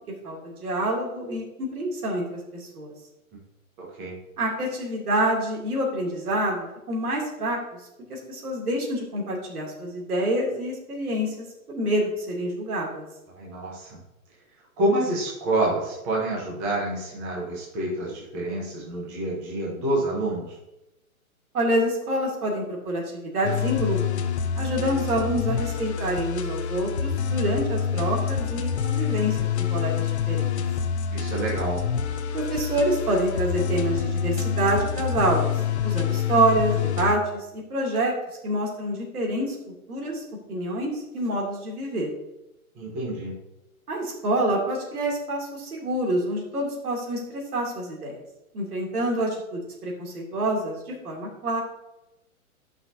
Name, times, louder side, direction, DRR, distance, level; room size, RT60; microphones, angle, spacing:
voice 1, 0.2-2.9 4.4-7.6 8.1-11.4 11.7-13.1 21.5-24.0 24.6-30.5 32.3-35.5 35.8-38.1 38.4-40.2 40.5-42.1 43.9-48.2 48.5-51.6, right 1 dB, 85° right, -2 dB, 2.8 m, -27 dB
voice 2, 3.8-4.1 13.4-14.0 14.8-20.5 31.1-31.8 42.7-43.3, right 1 dB, 10° right, -5 dB, 0.9 m, -28 dB
sound 1, 23.4-37.2, left 7 dB, 50° left, 0.6 m, -27 dB
11.5 x 5.7 x 2.7 m, 0.93 s
hypercardioid pair, 175°, 43 cm